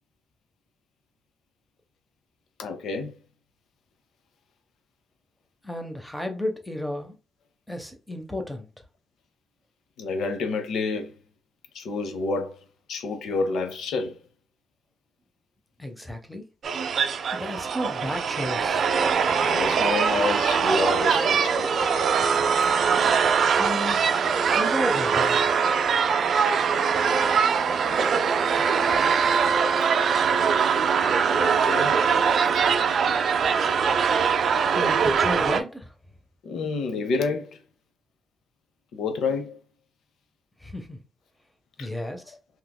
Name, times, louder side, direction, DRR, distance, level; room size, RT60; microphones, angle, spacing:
voice 1, 2.6-3.1 10.0-11.2 11.7-12.6 12.9-14.2 19.4-21.7 31.3-32.0 36.4-37.6 38.9-39.6 41.8-41.9, left 4 dB, 85° left, 0.5 m, -29 dB
voice 2, 5.6-7.1 7.7-8.7 15.8-16.4 17.3-19.0 23.5-24.2 24.5-25.5 34.7-35.9 40.6-41.0 41.8-42.4, left 1 dB, 5° left, 0.6 m, -32 dB
sound 1, 16.6-35.6, right 6 dB, 55° right, 0.4 m, -22 dB
3.4 x 2.9 x 2.2 m
wide cardioid pair, 150°, 0 cm